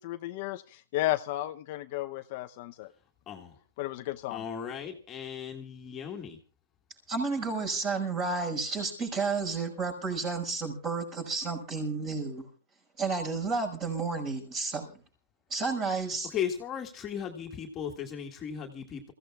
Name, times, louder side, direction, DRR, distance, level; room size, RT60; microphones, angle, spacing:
voice 1, 0.0-2.9 3.8-4.4, left 16 dB, 45° left, 7 dB, 0.8 m, -33 dB
voice 2, 4.3-6.4 16.3-19.1, left 8 dB, 20° left, 1 dB, 2.0 m, -36 dB
voice 3, 7.1-12.5 13.0-14.9 15.5-16.3, right 4 dB, 25° right, 3 dB, 5.9 m, -31 dB
28.0 x 16.0 x 2.4 m, 0.34 s
hypercardioid pair, 150°, 0 cm